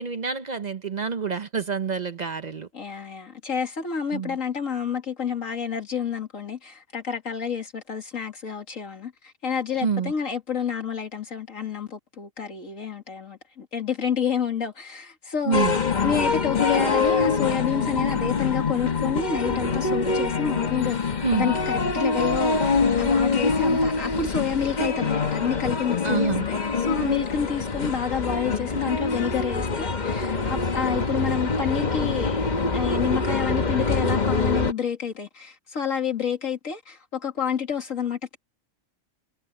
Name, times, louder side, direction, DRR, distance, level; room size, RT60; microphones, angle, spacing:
voice 1, 0.0-2.7 4.1-4.4 9.8-10.1 15.5-15.8 21.2-21.5 26.0-26.4, right 6 dB, 45° right, 0.7 m, -27 dB
voice 2, 2.7-15.7 16.0-21.0 21.4-38.4, left 7 dB, 85° left, 2.6 m, -29 dB
sound 1, 15.5-34.7, left 4 dB, 35° left, 1.3 m, -24 dB
omnidirectional pair, 1.3 m